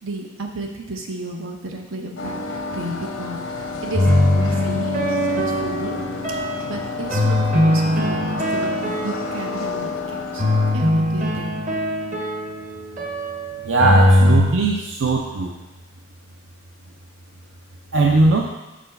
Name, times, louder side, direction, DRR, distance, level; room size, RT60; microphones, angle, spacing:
voice 1, 0.0-6.0 6.3-6.4 6.7-10.4 10.7-11.5, right 2 dB, 80° right, 2 dB, 1.0 m, -33 dB
sound 1, 2.2-10.7, left 3 dB, 85° left, 0.7 m, -30 dB
sound 2, 3.9-6.6 7.1-9.8 10.4-14.5, left 1 dB, 40° right, 0.9 m, -20 dB
voice 2, 13.6-15.5 17.9-18.5, right 3 dB, 65° right, 0 dB, 0.6 m, -18 dB
6.1 x 4.1 x 5.7 m, 1.1 s
head